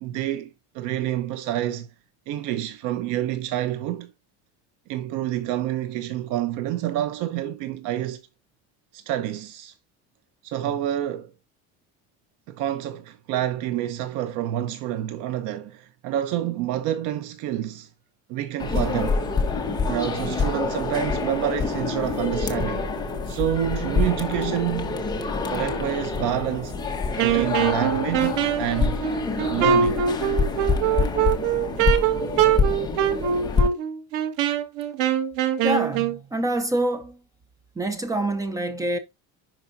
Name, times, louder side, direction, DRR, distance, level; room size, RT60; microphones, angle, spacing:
voice 1, 0.0-1.9 2.3-4.1 4.9-8.2 8.9-9.7 10.4-11.3 12.5-17.9 18.3-19.2 19.9-22.9 23.3-25.0 25.5-26.8 27.2-29.0 29.5-30.0, right 12 dB, 65° right, 0.8 m, -28 dB
sound 1, 18.6-33.7, left 4 dB, 10° left, 1.1 m, -26 dB
Wind instrument woodwind instrument, 27.2-36.2, right 9 dB, 85° right, 1.6 m, -23 dB
voice 2, 35.6-37.2 37.7-39.0, right 1 dB, 10° right, 0.6 m, -26 dB
10.5 x 5.0 x 2.6 m
cardioid pair, 170°, 33 cm